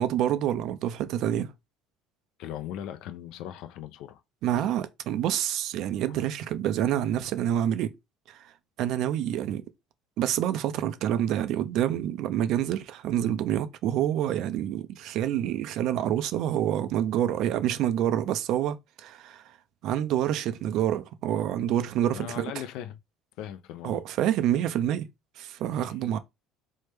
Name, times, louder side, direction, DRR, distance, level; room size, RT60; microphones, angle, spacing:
voice 1, 0.0-1.5 4.4-7.9 8.8-9.6 10.2-19.4 19.8-22.5 23.8-25.1 25.4-26.2, right 11 dB, 60° right, 0.4 m, -27 dB
voice 2, 2.4-4.2 6.1-6.3 22.1-23.0 23.4-24.0 25.8-26.0, left 11 dB, 70° left, 0.4 m, -39 dB
3.1 x 2.1 x 3.2 m
cardioid pair, 125°, 0 cm